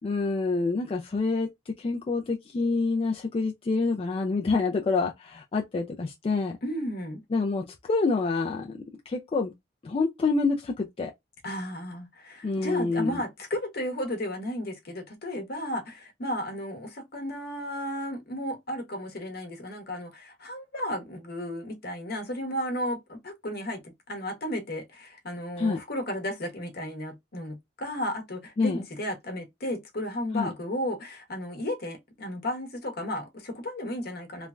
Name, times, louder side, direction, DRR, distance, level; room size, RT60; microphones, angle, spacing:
voice 1, 0.0-6.6 7.3-9.5 9.8-11.1 12.4-13.2 25.6-25.8 28.6-28.8 30.3-30.5, left 3 dB, 30° left, 0.3 m, -27 dB
voice 2, 6.6-7.2 11.4-34.5, equal, 55° left, 0.9 m, -34 dB
3.1 x 2.1 x 2.3 m
head